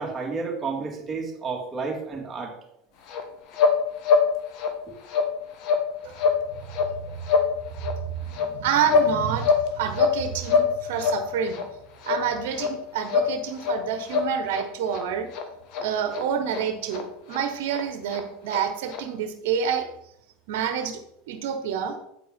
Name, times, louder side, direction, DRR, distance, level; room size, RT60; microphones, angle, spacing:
voice 1, 0.0-2.5, right 4 dB, 25° right, -1 dB, 2.5 m, -31 dB
sound 1, 3.1-3.2 3.5-3.8 4.0-4.3 4.5-4.7 5.1-5.3 5.6-5.9 6.1-6.4 6.7-6.9 7.2-7.5 7.8-8.0 8.3-9.1 9.4-10.2 10.4-10.7 11.0-11.2 11.5-11.6 12.0-12.2 12.5-12.7 13.1-13.3 13.6-13.8 14.1-14.6 14.9-15.0 15.3-15.4 15.7-15.8 16.1-16.2 16.5-16.6 16.9-17.0 17.3-17.4 17.7-17.8 18.1-18.2 18.5-18.6 18.9-19.0, left 5 dB, 55° left, 1.3 m, -23 dB
voice 2, 8.2-11.6 12.0-15.3 15.8-19.9 20.5-21.0 21.3-21.9, right 8 dB, 75° right, 7 dB, 1.2 m, -28 dB
8.6 x 4.4 x 5.2 m, 0.76 s
hypercardioid pair, 100°, 0 cm